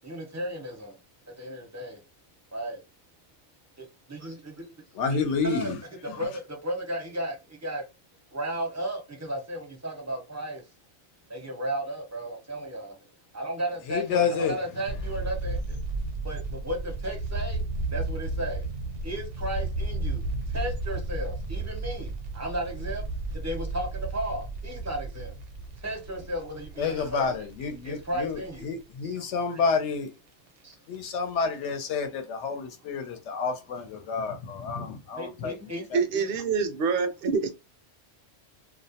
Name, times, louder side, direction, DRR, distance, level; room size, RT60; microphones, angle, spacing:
voice 1, 0.0-1.0 1.3-2.0 2.5-2.8 3.8-4.7 5.1-5.7 6.0-7.8 8.3-10.6 11.3-13.0 13.3-15.8 16.2-17.6 17.9-18.7 19.0-23.0 23.3-25.4 25.8-28.7 29.0-29.6 30.6-30.8 35.2-35.9 36.1-36.3, right 1 dB, 20° right, 0.5 m, -34 dB
voice 2, 4.9-5.8 6.1-6.2 13.9-14.6 26.8-30.1 30.9-35.6 35.9-36.0, left 5 dB, 75° left, 0.9 m, -29 dB
sound 1, 14.9-28.9 29.3-29.4 29.6-29.8 30.7-31.2 31.5-31.6 31.9-32.0, right 2 dB, 85° right, 0.9 m, -33 dB
voice 3, 35.9-37.5, right 5 dB, 60° right, 0.6 m, -26 dB
2.4 x 2.0 x 2.7 m
omnidirectional pair, 1.2 m